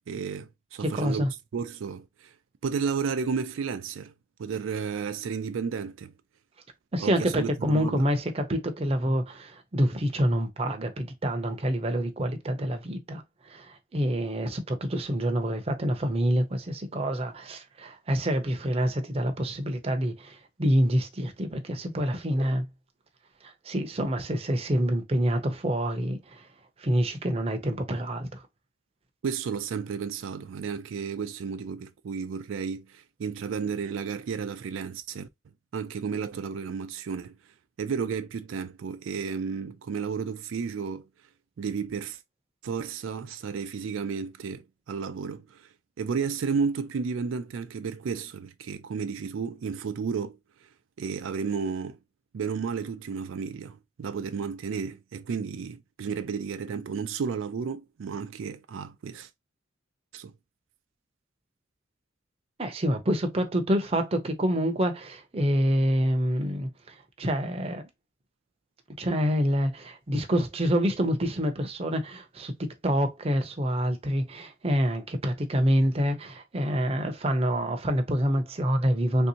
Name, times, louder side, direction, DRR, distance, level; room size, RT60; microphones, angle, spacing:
voice 1, 0.1-1.2 1.5-2.3 2.6-4.1 4.4-6.1 7.0-8.0 29.2-35.3 35.7-37.4 37.8-41.1 41.6-42.2 42.6-45.7 46.0-50.7 51.0-52.0 52.3-59.3 60.1-60.3, right 6 dB, 80° right, 0.4 m, -32 dB
voice 2, 0.8-1.3 6.9-22.7 23.4-26.5 26.8-28.4 62.6-67.9 69.0-79.3, equal, 30° right, 0.6 m, -27 dB
3.4 x 2.7 x 2.8 m
head